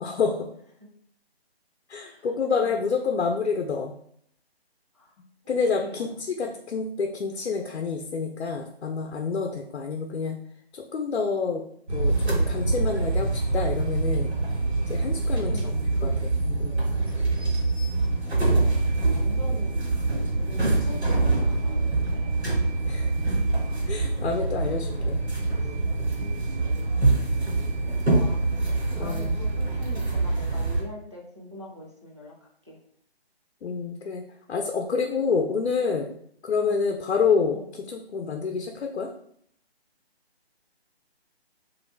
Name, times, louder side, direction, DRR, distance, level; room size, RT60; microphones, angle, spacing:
voice 1, 0.0-0.5 1.9-3.9 5.5-10.4 10.7-11.6 11.9-14.4 14.9-16.8 22.8-23.2 23.9-25.2 28.9-29.4 33.6-34.2 34.5-36.1 36.4-39.1, left 5 dB, 80° left, 4 dB, 0.5 m, -28 dB
voice 2, 2.6-3.2 4.9-5.1 5.4-6.5 9.4-9.5 15.5-15.7 16.0-16.2 18.4-20.1 20.5-22.3 25.6-25.7 26.2-26.3 28.0-28.4 28.9-32.8 36.6-36.8 37.5-37.7, left 1 dB, 30° right, -3 dB, 0.4 m, -43 dB
sound 1, 11.9-30.8, right 2 dB, 80° right, 1.4 m, -25 dB
2.6 x 2.5 x 3.1 m, 0.65 s
figure-of-eight pair, 165°, 32 cm